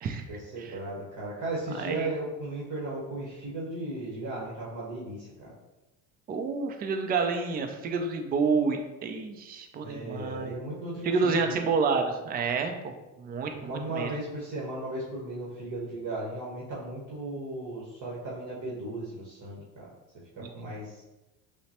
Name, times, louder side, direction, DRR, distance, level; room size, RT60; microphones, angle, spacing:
voice 1, 0.3-5.5 9.8-11.6 13.6-19.9 20.4-21.0, right 2 dB, 40° right, -5 dB, 1.2 m, -36 dB
voice 2, 1.7-2.1 6.3-10.6 11.0-14.1 20.4-20.7, right 4 dB, 20° right, 5 dB, 0.3 m, -29 dB
5.5 x 2.2 x 2.9 m, 1.0 s
supercardioid pair, 85°, 50 cm